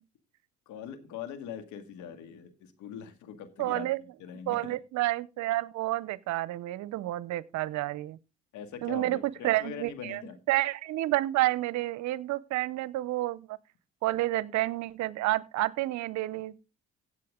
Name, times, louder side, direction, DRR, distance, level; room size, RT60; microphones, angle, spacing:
voice 1, 0.7-4.8 8.5-10.4, left 8 dB, 75° left, 2.0 m, -42 dB
voice 2, 3.6-4.0 4.5-8.2 8.8-10.2 10.5-13.6 14.0-16.5, right 16 dB, 70° right, 0.7 m, -30 dB
16.0 x 7.4 x 3.7 m
supercardioid pair, 60°, 29 cm